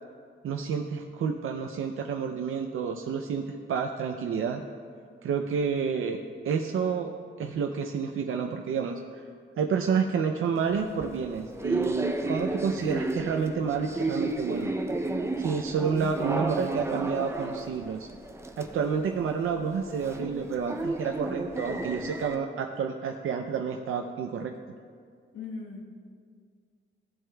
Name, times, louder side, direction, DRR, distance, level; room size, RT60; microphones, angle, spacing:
voice 1, 0.4-4.6 5.2-6.2 6.4-7.1 7.4-9.2 9.6-14.7 15.4-18.1 18.6-24.5, right 6 dB, 80° right, 4 dB, 0.5 m, -29 dB
sound 1, 10.6-22.4, right 2 dB, 15° right, 0.5 m, -33 dB
voice 2, 25.3-25.8, left 4 dB, 85° left, 0 dB, 1.3 m, -38 dB
15.0 x 7.7 x 2.3 m, 2.1 s
wide cardioid pair, 140°, 21 cm